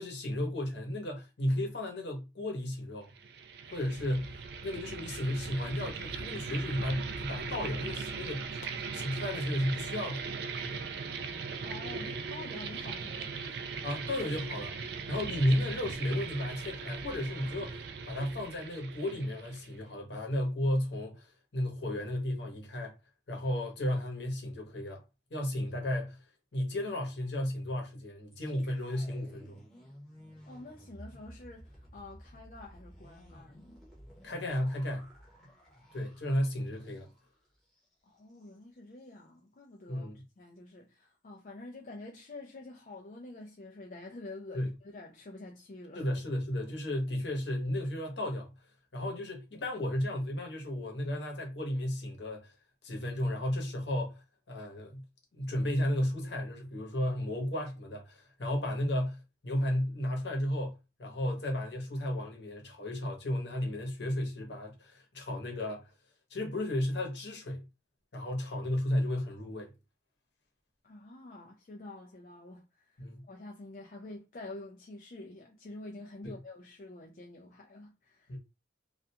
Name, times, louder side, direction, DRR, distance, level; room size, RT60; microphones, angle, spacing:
voice 1, 0.0-3.1 3.7-8.5 8.9-10.2 10.6-10.8 13.8-14.8 15.1-22.9 23.3-25.0 25.3-26.2 26.5-29.6 34.2-35.1 35.9-37.1 39.9-40.2 44.5-44.7 45.9-48.5 48.9-52.5 52.8-55.0 55.3-60.7 61.0-65.8 66.3-67.7 68.1-69.7 73.0-73.2 76.2-76.3 78.3-78.4, left 1 dB, 75° left, 0.9 m, -33 dB
sound 1, 3.1-19.8, right 5 dB, 60° right, 0.3 m, -39 dB
voice 2, 11.6-13.6 30.5-33.8 38.0-40.1 40.4-46.1 70.8-78.4, left 2 dB, 45° left, 0.4 m, -48 dB
sound 2, 28.3-37.3 37.6-37.8 38.2-38.6, equal, ahead, 0.7 m, -54 dB
2.4 x 2.2 x 2.7 m
head